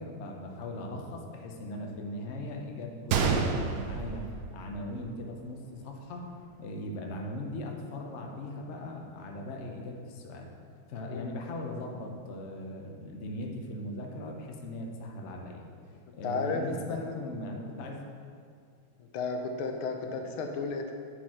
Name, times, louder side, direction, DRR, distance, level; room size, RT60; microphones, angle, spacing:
voice 1, 0.0-4.2 4.5-6.3 6.6-10.5 10.9-15.7 16.1-18.0 20.1-20.2, left 1 dB, 55° left, 1 dB, 0.8 m, -39 dB
Gunshot gunfire, 3.1-5.1 5.4-5.5 6.2-6.4, right 5 dB, 70° right, 0.8 m, -29 dB
voice 2, 16.2-16.6 16.9-17.1 19.0-20.9, left 4 dB, 85° left, 4 dB, 1.6 m, -33 dB
9.8 x 4.5 x 4.4 m, 2.3 s
omnidirectional pair, 2.3 m